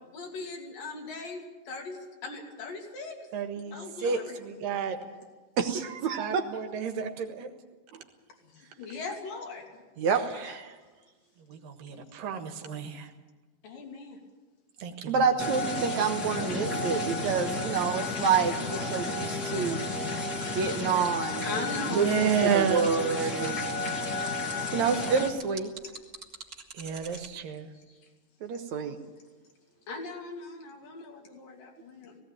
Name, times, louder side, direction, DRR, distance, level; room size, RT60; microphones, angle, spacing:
voice 1, 0.1-3.3 3.7-4.4 4.9-5.3 6.3-6.4 8.4-9.8 10.4-10.6 12.6-12.8 13.6-14.2 20.0-20.1 21.2-22.7 25.1-25.6 25.8-26.0 27.4-28.1 29.1-29.3 29.9-32.2, left 3 dB, 80° left, 1 dB, 4.5 m, -40 dB
voice 2, 3.3-5.0 6.2-7.5 10.2-10.3 11.4-13.1 14.8-15.2 21.9-22.9 23.2-23.6 26.7-27.7, right 6 dB, 85° right, 6 dB, 3.2 m, -31 dB
voice 3, 5.6-6.4 10.0-10.7 15.1-19.8 20.5-21.5 21.9-22.1 22.4-23.7 24.7-25.7 28.4-29.0, right 6 dB, 65° right, 6 dB, 2.2 m, -28 dB
sound 1, 15.4-25.3, left 2 dB, 35° left, 2.1 m, -32 dB
sound 2, 20.4-27.3, right 4 dB, 30° right, 1.9 m, -45 dB
17.5 x 17.0 x 8.9 m, 1.3 s
omnidirectional pair, 3.9 m